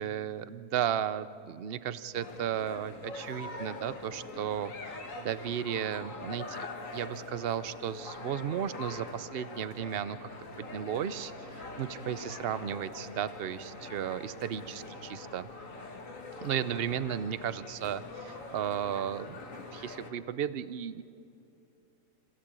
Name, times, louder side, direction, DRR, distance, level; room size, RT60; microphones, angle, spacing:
voice 1, 0.0-10.3 10.6-15.5 16.4-19.4 19.7-21.0, right 9 dB, 55° right, 15 dB, 0.7 m, -34 dB
sound 1, 2.1-20.1, left 3 dB, 55° left, 1.9 m, -44 dB
sound 2, 6.5-20.2, equal, 35° right, 1.6 m, -54 dB
26.5 x 16.0 x 8.9 m, 2.7 s
omnidirectional pair, 1.6 m